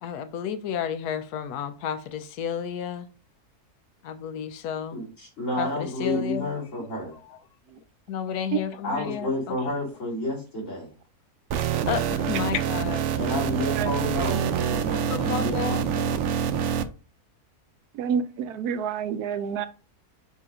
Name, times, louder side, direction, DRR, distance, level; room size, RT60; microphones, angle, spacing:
voice 1, 0.0-3.1 4.0-5.0 5.6-6.5 8.1-9.7 11.9-13.0 15.1-15.9, left 8 dB, 85° left, 1.1 m, -31 dB
voice 2, 4.9-7.1 8.8-10.9 13.1-16.2, left 1 dB, 50° left, 3.3 m, -30 dB
sound 1, 11.5-16.9, right 8 dB, 65° right, 0.8 m, -26 dB
voice 3, 17.9-19.7, right 7 dB, 85° right, 1.2 m, -28 dB
6.8 x 2.8 x 4.9 m
omnidirectional pair, 1.6 m